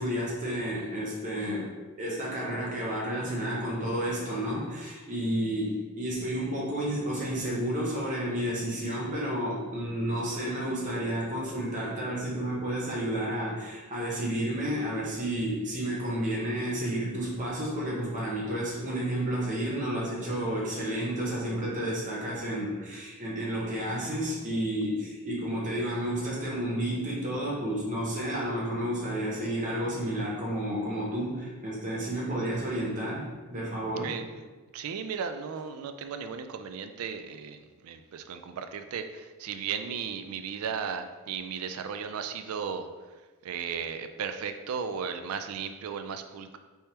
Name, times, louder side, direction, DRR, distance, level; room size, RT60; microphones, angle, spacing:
voice 1, 0.0-1.7 2.0-34.1, right 1 dB, 35° right, -5 dB, 0.9 m, -31 dB
voice 2, 34.0-42.9 43.4-46.6, right 6 dB, 80° right, 8 dB, 0.3 m, -35 dB
4.4 x 3.4 x 2.9 m, 1.3 s
head